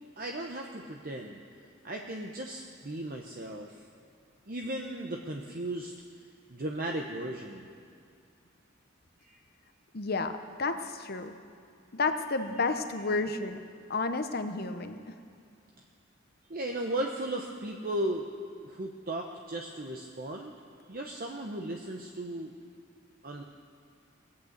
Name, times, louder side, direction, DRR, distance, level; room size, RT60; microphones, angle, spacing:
voice 1, 0.2-1.4 1.8-3.8 4.5-5.9 6.5-7.7 9.2-9.4 16.5-18.3 18.6-20.5 20.9-22.5 23.2-23.4, right 1 dB, 45° right, 1 dB, 0.9 m, -36 dB
voice 2, 9.9-11.3 11.9-13.6 13.9-15.2, left 3 dB, 50° left, 8 dB, 0.9 m, -31 dB
19.5 x 8.7 x 8.0 m, 2.4 s
head